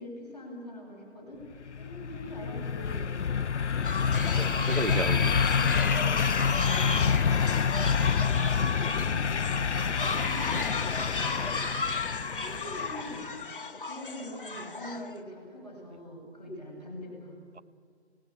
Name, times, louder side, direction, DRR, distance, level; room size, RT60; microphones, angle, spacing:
voice 1, 0.0-1.4 1.8-3.4 4.0-5.1 5.4-10.9 12.3-13.2 13.8-17.4, left 1 dB, 10° right, 6.9 m, -43 dB
sound 1, 1.6-13.2, left 6 dB, 85° left, 0.6 m, -28 dB
sound 2, 3.8-15.2, left 3 dB, 50° left, 0.9 m, -35 dB
voice 2, 4.4-5.4 11.3-11.7, right 3 dB, 75° right, 1.1 m, -34 dB
29.0 x 17.5 x 8.6 m
figure-of-eight pair, 165°, 34 cm